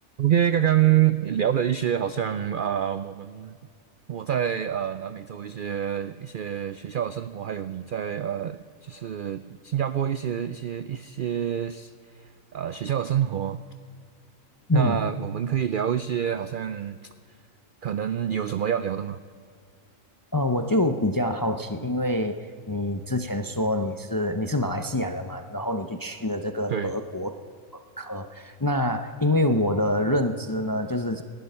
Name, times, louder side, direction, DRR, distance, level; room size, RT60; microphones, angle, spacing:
voice 1, 0.2-3.6 4.1-13.6 14.7-17.0 17.8-19.2 26.7-26.9, right 10 dB, 70° right, 13 dB, 0.5 m, -27 dB
voice 2, 20.3-22.4 22.7-27.4 27.7-31.2, left 1 dB, 25° left, 8 dB, 0.4 m, -26 dB
19.0 x 12.5 x 5.5 m, 2.2 s
omnidirectional pair, 1.4 m